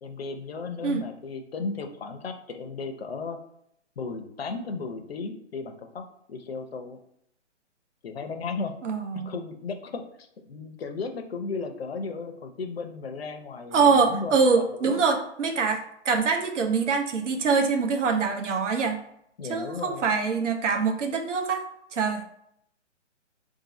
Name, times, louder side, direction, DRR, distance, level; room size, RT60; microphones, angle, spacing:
voice 1, 0.0-3.4 4.0-7.0 8.0-8.7 9.1-15.0 19.4-20.1, left 4 dB, 55° left, 6 dB, 0.6 m, -35 dB
voice 2, 8.8-9.3 13.7-19.0 19.5-21.7 21.9-22.2, right 5 dB, 80° right, 4 dB, 0.7 m, -24 dB
2.7 x 2.5 x 4.0 m, 0.73 s
hypercardioid pair, 180°, 36 cm